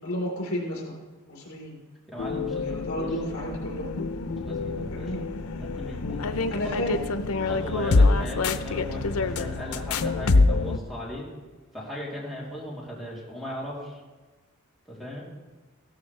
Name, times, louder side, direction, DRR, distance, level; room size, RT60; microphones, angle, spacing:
voice 1, 0.0-0.9 1.3-1.8 2.6-3.9 4.9-5.2 6.5-7.0 7.4-7.6, equal, 70° left, -1 dB, 3.9 m, -32 dB
voice 2, 2.1-3.1 4.5-5.1 5.5-6.3 6.8-6.9 7.4-11.2 11.7-14.0 14.9-15.2, left 1 dB, ahead, -5 dB, 3.2 m, -37 dB
sound 1, 2.2-10.8, left 3 dB, 90° left, 0.6 m, -26 dB
15.5 x 13.5 x 3.3 m, 1.2 s
head